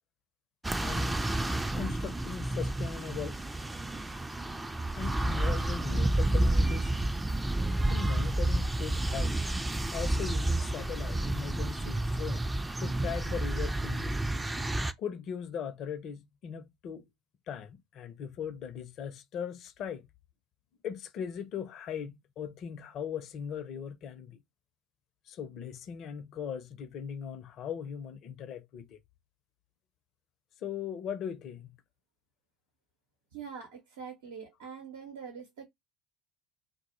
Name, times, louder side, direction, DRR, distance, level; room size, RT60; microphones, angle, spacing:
sound 1, 0.6-14.9, right 1 dB, 10° right, 0.3 m, -30 dB
voice 1, 0.8-1.3 1.7-3.4 5.0-6.9 7.9-9.4 9.9-12.5 12.8-14.2 15.0-17.1 17.5-20.1 20.8-24.4 25.3-29.0 30.6-31.7, left 7 dB, 50° left, 0.5 m, -39 dB
voice 2, 33.3-35.6, right 6 dB, 80° right, 0.7 m, -44 dB
2.1 x 2.0 x 2.9 m
hypercardioid pair, 70°, 0 cm